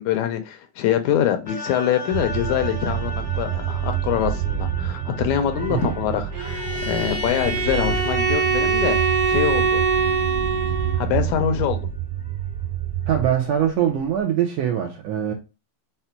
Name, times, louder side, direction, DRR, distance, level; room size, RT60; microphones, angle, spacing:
voice 1, 0.0-9.0 9.3-9.8 10.3-10.5 11.0-11.9, left 10 dB, 80° left, 1.9 m, -24 dB
sound 1, 1.5-11.7 12.2-12.4, left 1 dB, 5° right, 0.8 m, -39 dB
sound 2, 2.1-13.3, right 10 dB, 90° right, 2.1 m, -28 dB
Bowed string instrument, 6.3-11.1, right 4 dB, 55° right, 2.3 m, -23 dB
voice 2, 13.1-15.3, right 9 dB, 75° right, 1.6 m, -22 dB
5.6 x 2.1 x 4.4 m
omnidirectional pair, 3.5 m